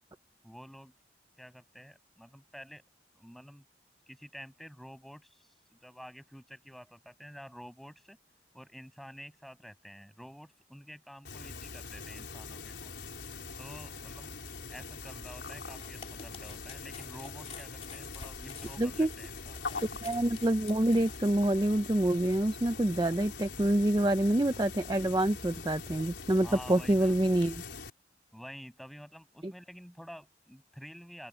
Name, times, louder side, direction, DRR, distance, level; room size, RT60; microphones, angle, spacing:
voice 1, 0.4-0.9 1.4-2.8 3.1-3.6 4.1-8.2 8.5-12.9 13.6-14.3 14.7-19.8 26.4-27.2 28.3-31.3, equal, ahead, 6.7 m, -49 dB
sound 1, 11.3-27.9, left 4 dB, 75° left, 4.6 m, -43 dB
sound 2, 15.6-21.4, left 6 dB, 35° left, 3.0 m, -50 dB
voice 2, 18.8-19.1 20.0-27.6 29.4-29.5, right 1 dB, 20° right, 0.6 m, -27 dB
open air
head